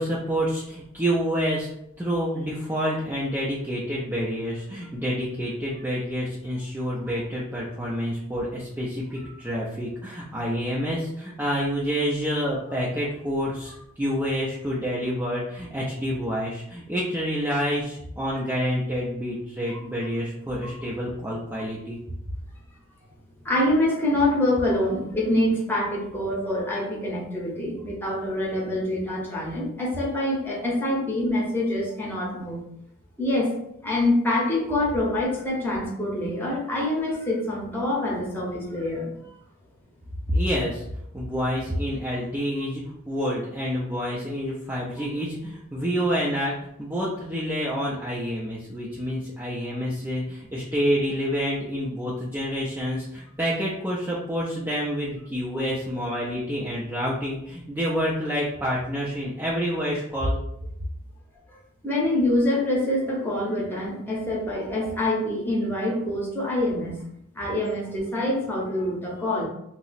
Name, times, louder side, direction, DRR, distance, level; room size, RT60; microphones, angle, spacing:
voice 1, 0.0-1.7 2.0-22.0 40.3-40.8 41.1-60.4, equal, 10° right, -6 dB, 0.4 m, -28 dB
voice 2, 23.4-32.6 33.2-33.5 33.8-39.1 45.0-45.1 61.8-67.0 67.3-69.4, left 1 dB, 10° left, -4 dB, 0.7 m, -25 dB
2.8 x 2.0 x 4.0 m, 0.77 s
head